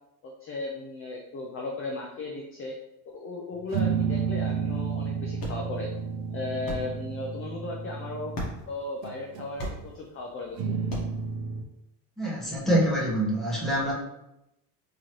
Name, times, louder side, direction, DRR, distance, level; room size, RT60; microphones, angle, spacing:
voice 1, 0.2-2.7 3.1-5.9 6.3-8.3 8.7-9.6 9.9-10.8, left 2 dB, 30° left, 0 dB, 0.5 m, -36 dB
sound 1, 3.7-8.6 9.0-9.9 10.6-11.6, right 6 dB, 60° right, 0.7 m, -31 dB
sound 2, 4.6-11.3, equal, 45° left, 1.4 m, -41 dB
voice 2, 12.2-13.9, right 1 dB, ahead, -7 dB, 1.2 m, -25 dB
3.7 x 3.0 x 3.1 m, 0.89 s
cardioid pair, 115°, 49 cm